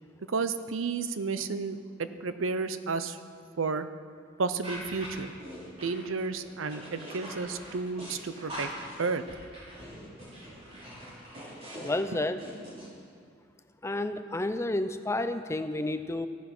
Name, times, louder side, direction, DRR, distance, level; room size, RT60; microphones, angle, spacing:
voice 1, 0.3-3.2 3.6-3.9 4.4-5.3 5.8-8.7 9.0-9.2 12.1-12.2, right 4 dB, 90° right, 11 dB, 0.7 m, -32 dB
sound 1, 4.6-12.9, equal, 30° right, 3.1 m, -43 dB
voice 2, 11.8-12.4 13.8-16.3, left 2 dB, 15° left, 10 dB, 0.5 m, -30 dB
15.0 x 9.9 x 6.0 m, 2.1 s
head